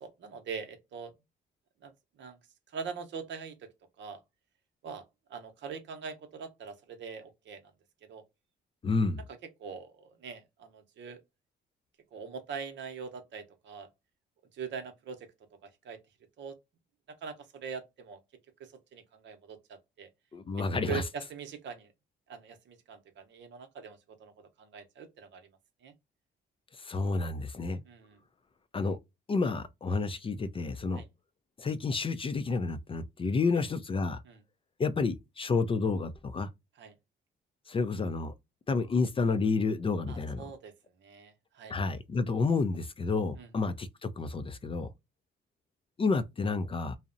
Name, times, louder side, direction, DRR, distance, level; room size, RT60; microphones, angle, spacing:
voice 1, 0.0-1.1 1.8-1.9 2.2-2.4 2.7-3.5 4.0-4.2 4.8-5.0 5.3-7.6 8.1-8.2 9.6-11.2 12.1-13.9 14.5-15.3 15.6-16.0 16.4-16.6 17.2-18.2 18.6-20.1 20.9-21.9 22.3-24.3 24.6-25.5 25.8-25.9 27.8-28.2 31.0-31.1 34.3-34.4 36.8-36.9 40.1-40.7 41.0-41.7 43.4-43.5, right 6 dB, 65° right, 0.7 m, -42 dB
voice 2, 8.8-9.2 20.3-21.0 26.7-27.8 28.7-29.0 29.3-31.0 31.6-34.2 34.8-36.5 37.7-38.3 38.7-40.4 41.7-44.9 46.0-47.0, left 4 dB, 25° left, 0.4 m, -30 dB
2.6 x 2.0 x 2.5 m
cardioid pair, 90°, 20 cm